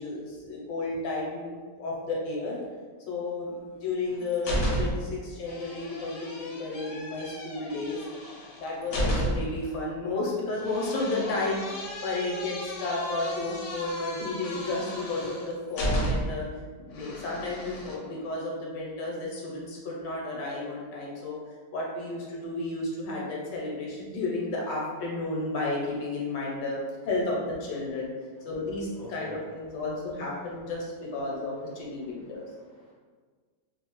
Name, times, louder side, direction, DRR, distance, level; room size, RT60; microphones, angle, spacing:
voice 1, 0.0-2.6 3.1-8.0 8.6-16.5 16.8-21.4 21.7-26.8 27.0-28.1 28.4-32.4, left 2 dB, 90° left, -3 dB, 1.4 m, -32 dB
sound 1, 3.8-5.2 5.5-9.6 10.6-16.5 16.9-18.0, equal, 70° left, 0.8 m, -33 dB
voice 2, 28.9-29.8 31.6-32.9, left 2 dB, 30° left, -7 dB, 0.3 m, -48 dB
3.2 x 2.0 x 2.9 m, 1.5 s
omnidirectional pair, 1.9 m